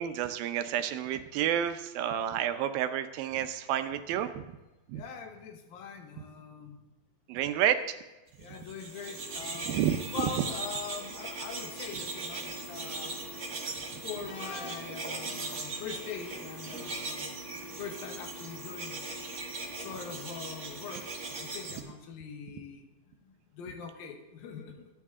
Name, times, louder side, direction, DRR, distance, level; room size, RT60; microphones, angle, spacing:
voice 1, 0.0-4.6 4.9-5.0 7.3-8.0 9.6-10.4, right 10 dB, 85° right, 9 dB, 2.6 m, -30 dB
voice 2, 4.9-6.8 8.4-9.8 10.1-13.1 14.0-17.4 17.8-19.1 19.7-22.9 23.5-24.9, left 6 dB, 80° left, 5 dB, 3.1 m, -42 dB
sound 1, 8.5-21.8, right 3 dB, 40° right, 1.2 m, -39 dB
sound 2, 11.5-16.8, left 5 dB, 60° left, 1.4 m, -52 dB
24.5 x 9.2 x 3.7 m, 1.0 s
omnidirectional pair, 4.1 m